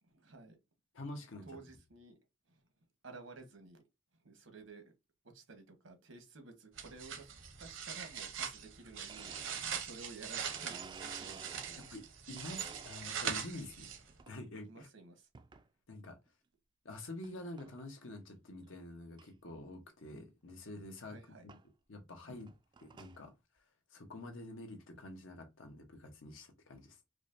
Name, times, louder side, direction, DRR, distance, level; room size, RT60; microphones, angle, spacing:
voice 1, 0.1-0.6 1.4-2.2 2.5-2.6 3.0-3.8 4.2-4.9 5.2-7.3 7.6-10.9 11.1-11.4 11.6-11.8 14.6-15.3 21.1-21.5, right 3 dB, 85° right, 1.1 m, -53 dB
voice 2, 0.9-1.5 11.8-13.9 14.3-14.9 15.9-16.2 16.8-21.2 21.4-21.6 21.9-22.5 22.8-23.6 23.9-27.0, left 1 dB, 80° left, 1.0 m, -48 dB
sound 1, 6.8-14.2, right 7 dB, 70° right, 0.8 m, -42 dB
Domestic sounds home sounds, 9.1-12.0 12.4-13.4 13.9-14.4 15.3-15.7 16.3-16.4 17.2-17.3 17.6-17.9 18.3-18.4 18.6-18.7 19.2-19.3 20.6-20.7 21.5-21.6 22.3-23.2, right 5 dB, 25° right, 0.3 m, -53 dB
4.8 x 2.2 x 2.5 m
head